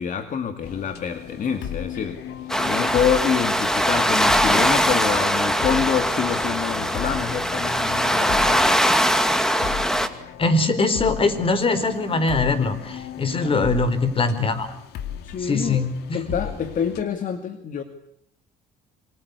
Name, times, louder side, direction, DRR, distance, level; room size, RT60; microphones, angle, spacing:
voice 1, 0.0-8.9 13.3-13.6 15.2-15.8 16.1-17.8, left 7 dB, 50° left, 8 dB, 2.3 m, -27 dB
sound 1, 0.6-17.0, left 9 dB, 80° left, 2.4 m, -36 dB
sound 2, 2.5-10.1, equal, 5° left, 2.5 m, -21 dB
voice 2, 10.4-14.7 15.4-16.2, left 3 dB, 35° left, 13 dB, 4.3 m, -22 dB
27.0 x 25.0 x 8.3 m, 0.69 s
cardioid pair, 110°, 17 cm